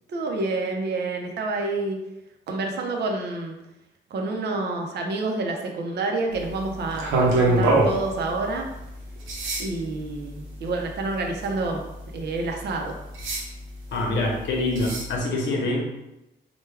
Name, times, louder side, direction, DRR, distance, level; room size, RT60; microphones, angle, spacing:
voice 1, 0.1-2.0 2.5-3.5 4.1-8.7 9.6-11.8 12.1-13.0, right 3 dB, 60° right, 2 dB, 0.6 m, -28 dB
sound 1, 6.3-15.2, right 2 dB, 90° right, 0.8 m, -28 dB
voice 2, 13.9-15.8, left 2 dB, 65° left, 0 dB, 0.9 m, -25 dB
3.3 x 2.2 x 3.3 m, 0.93 s
cardioid pair, 90°, 20 cm